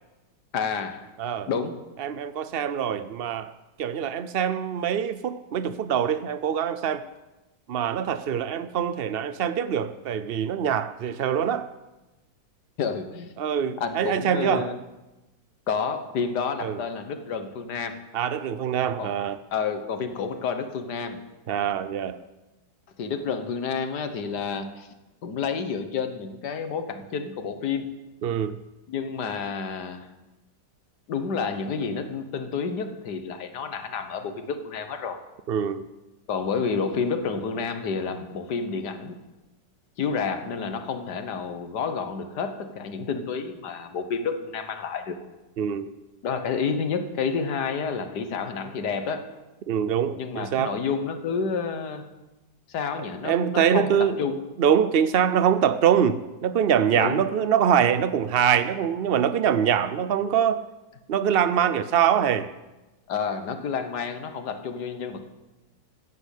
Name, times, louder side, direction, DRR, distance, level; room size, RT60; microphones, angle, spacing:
voice 1, 0.5-1.1 1.5-1.8 12.8-13.3 13.8-14.8 15.7-18.0 19.0-19.2 19.5-21.2 23.0-24.9 25.2-27.9 28.9-30.1 31.1-35.2 36.3-39.2 40.0-45.2 46.2-49.3 50.2-52.1 52.7-54.4 56.9-57.2 63.1-65.3, left 5 dB, 70° left, 9 dB, 1.8 m, -29 dB
voice 2, 1.2-1.5 2.0-3.5 3.8-7.0 7.7-11.7 13.4-14.7 16.6-16.8 18.1-19.4 21.5-22.2 28.2-28.6 35.5-35.8 45.6-45.9 49.7-50.8 53.2-54.2 54.6-60.6 61.1-62.5, right 8 dB, 75° right, 12 dB, 0.5 m, -24 dB
15.5 x 9.7 x 8.3 m, 1.1 s
omnidirectional pair, 1.9 m